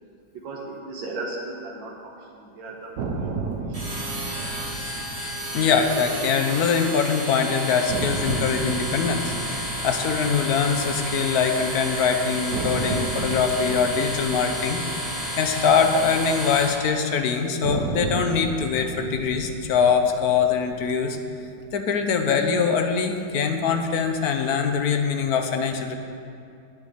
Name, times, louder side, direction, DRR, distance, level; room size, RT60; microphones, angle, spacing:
voice 1, 0.3-3.9 4.2-4.5, right 2 dB, 85° right, -2 dB, 1.8 m, -37 dB
sound 1, 3.0-7.1 7.3-7.4 7.9-12.0 12.5-16.9 17.6-22.0, right 3 dB, 65° right, 1.4 m, -34 dB
sound 2, 3.7-16.7, equal, 35° right, 2.4 m, -31 dB
voice 2, 5.5-15.1 15.3-21.2 21.7-26.0, left 6 dB, 60° left, 6 dB, 1.2 m, -23 dB
9.4 x 6.5 x 8.8 m, 2.5 s
omnidirectional pair, 2.0 m